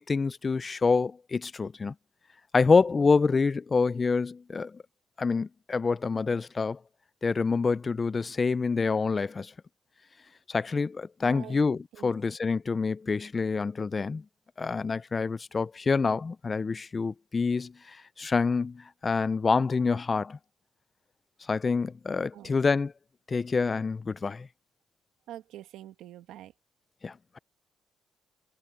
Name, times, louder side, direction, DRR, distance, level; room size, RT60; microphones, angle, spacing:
voice 1, 0.0-1.9 2.5-4.8 5.2-6.8 7.2-9.5 10.5-14.2 14.6-17.7 18.2-20.4 21.5-22.9 23.3-24.5 27.0-27.4, left 4 dB, 30° left, 0.5 m, -27 dB
voice 2, 11.2-11.6 11.9-12.1 22.3-22.6 25.3-26.5, right 12 dB, 90° right, 1.4 m, -45 dB
cardioid pair, 90°, 0 cm